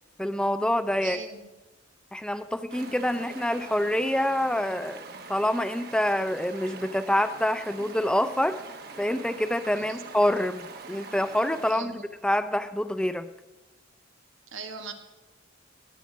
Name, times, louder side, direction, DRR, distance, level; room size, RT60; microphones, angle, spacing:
voice 1, 0.2-1.2 2.1-5.0 5.3-8.6 9.0-13.3, left 1 dB, 5° left, 11 dB, 0.4 m, -26 dB
voice 2, 1.0-1.4 3.2-3.3 9.7-10.0 11.7-12.0 14.5-14.9, right 5 dB, 85° right, 5 dB, 1.6 m, -39 dB
Stream, 2.7-11.7, right 4 dB, 50° right, 1.3 m, -43 dB
17.5 x 10.0 x 5.2 m, 1.1 s
head